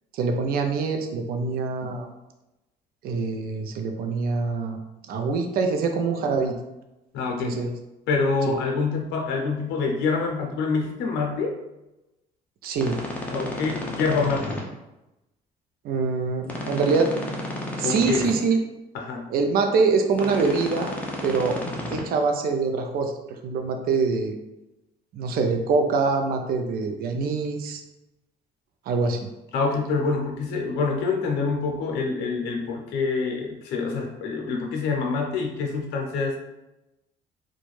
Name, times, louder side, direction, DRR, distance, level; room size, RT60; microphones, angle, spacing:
voice 1, 0.1-2.1 3.0-4.8 5.1-6.6 7.4-7.7 12.6-13.0 15.8-17.1 17.8-18.6 19.3-20.9 21.2-21.6 21.9-23.1 23.4-24.4 25.1-27.8 28.9-29.3, right 4 dB, 65° right, 5 dB, 0.4 m, -24 dB
voice 2, 7.1-7.7 8.1-11.6 13.3-14.5 17.8-18.3 18.9-19.3 29.5-36.4, left 4 dB, 90° left, 1 dB, 0.6 m, -26 dB
sound 1, 12.8-14.6 16.4-18.3 20.1-22.0, left 1 dB, 10° left, 0.5 m, -32 dB
2.5 x 2.2 x 3.1 m, 0.96 s
cardioid pair, 110°, 17 cm